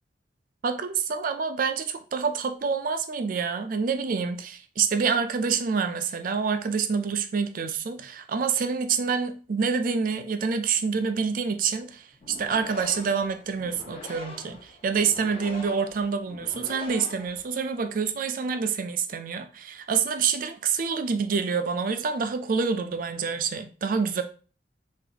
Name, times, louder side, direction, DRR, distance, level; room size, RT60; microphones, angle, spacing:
voice 1, 0.6-24.2, right 5 dB, 50° right, 0.4 m, -27 dB
sound 1, 12.1-17.9, left 2 dB, 30° left, 0.8 m, -44 dB
3.9 x 2.5 x 2.8 m
head